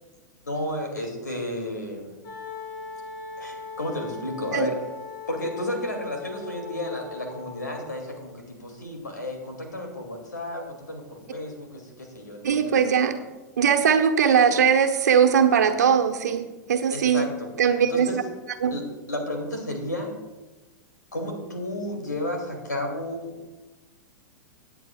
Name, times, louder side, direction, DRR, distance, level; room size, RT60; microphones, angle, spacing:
voice 1, 0.4-2.2 3.4-4.8 5.3-12.7 16.9-17.5 17.8-18.2 18.7-20.1 21.1-23.3, left 1 dB, 85° left, 2 dB, 2.7 m, -32 dB
Wind instrument woodwind instrument, 2.2-8.2, left 4 dB, 45° left, 3.8 m, -39 dB
voice 2, 12.4-13.2 13.6-17.3 17.6-18.1 18.6-18.7, right 7 dB, 70° right, 6 dB, 1.2 m, -20 dB
19.5 x 8.9 x 2.4 m, 1.2 s
figure-of-eight pair, 100°, 10 cm